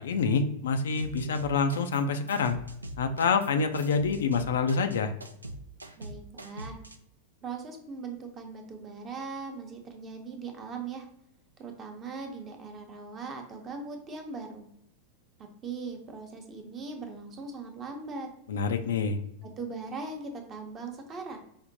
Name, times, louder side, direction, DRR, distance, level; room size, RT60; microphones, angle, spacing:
voice 1, 0.0-2.6 3.0-5.1 18.5-19.2, left 5 dB, 60° left, 7 dB, 0.3 m, -27 dB
sound 1, 1.0-2.0 2.3-7.0, right 1 dB, 80° right, 0.3 m, -42 dB
voice 2, 6.0-6.8 7.4-11.1 11.6-14.6 15.4-18.3 19.6-21.4, right 4 dB, 25° right, 4 dB, 0.7 m, -40 dB
4.9 x 2.1 x 2.7 m, 0.76 s
figure-of-eight pair, 90°, 0 cm